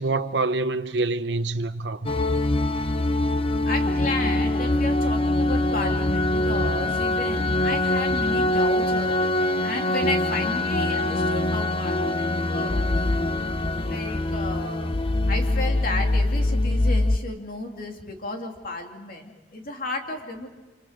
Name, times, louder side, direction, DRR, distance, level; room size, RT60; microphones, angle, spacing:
voice 1, 0.0-2.1, right 3 dB, 75° right, 1.0 m, -26 dB
sound 1, 2.0-17.2, left 1 dB, 30° left, 0.8 m, -23 dB
voice 2, 3.6-12.9 13.8-14.9 15.3-20.5, left 2 dB, 55° left, 2.7 m, -33 dB
28.5 x 27.0 x 5.1 m
head